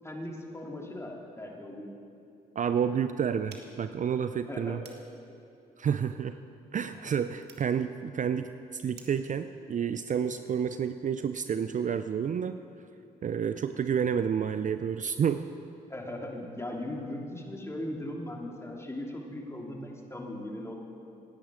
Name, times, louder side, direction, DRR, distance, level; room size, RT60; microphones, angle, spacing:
voice 1, 0.0-1.9 4.5-4.8 15.9-20.7, left 1 dB, 15° left, -1 dB, 3.0 m, -38 dB
voice 2, 2.6-4.8 5.8-6.4 6.7-12.6 13.2-15.4, right 7 dB, 45° right, 10 dB, 0.5 m, -30 dB
sound 1, 3.5-9.3, right 5 dB, 60° right, 1.7 m, -57 dB
17.5 x 10.5 x 5.1 m, 2.6 s
hypercardioid pair, 50°, 19 cm